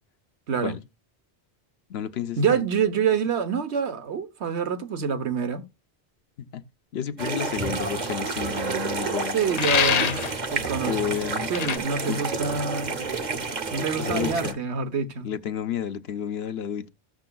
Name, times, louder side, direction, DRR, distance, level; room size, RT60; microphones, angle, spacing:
voice 1, 0.5-0.8 2.4-5.6 9.3-11.0 11.5-13.0 13.7-15.3, right 6 dB, 80° right, 1.3 m, -26 dB
voice 2, 1.9-2.6 6.5-6.6 6.9-9.8 10.8-11.5 12.1-12.3 14.0-14.6 15.2-16.9, left 8 dB, 70° left, 1.0 m, -31 dB
sound 1, 7.2-14.5, right 4 dB, 45° right, 1.0 m, -30 dB
sound 2, 9.6-10.4 11.5-11.8, left 7 dB, 50° left, 0.5 m, -23 dB
15.5 x 6.7 x 2.3 m
omnidirectional pair, 1.1 m